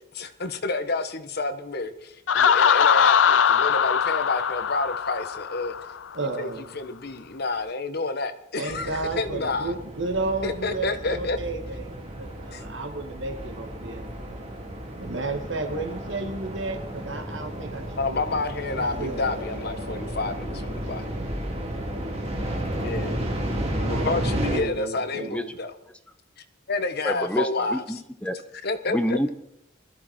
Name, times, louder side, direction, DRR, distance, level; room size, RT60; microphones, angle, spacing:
voice 1, 0.1-5.7 6.2-9.7 10.4-11.4 12.5-12.6 18.0-21.1 22.8-23.2 23.8-25.7 26.7-27.8 28.6-29.2, left 3 dB, 55° left, 10 dB, 1.4 m, -29 dB
Laughter, 2.3-6.0, left 7 dB, 85° left, 0.6 m, -21 dB
voice 2, 6.1-6.7 8.6-14.0 15.0-18.2 18.7-19.4 22.4-23.2 23.7-25.3, right 3 dB, 75° right, 5 dB, 2.1 m, -33 dB
sound 1, 8.7-24.6, right 1 dB, 35° right, 3.1 m, -32 dB
voice 3, 27.0-28.4 28.9-29.3, equal, 5° left, 9 dB, 0.9 m, -27 dB
21.0 x 14.0 x 4.5 m, 0.78 s
head